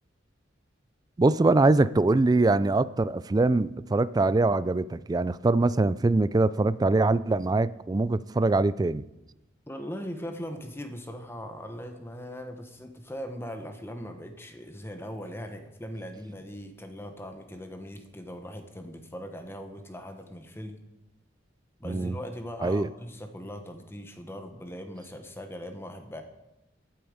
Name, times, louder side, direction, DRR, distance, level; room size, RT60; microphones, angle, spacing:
voice 1, 1.2-9.0 21.9-22.2 22.6-22.9, right 2 dB, 20° right, 17 dB, 0.3 m, -23 dB
voice 2, 9.7-20.8 21.8-26.2, equal, 15° left, 6 dB, 1.1 m, -40 dB
15.0 x 8.9 x 5.0 m, 0.95 s
head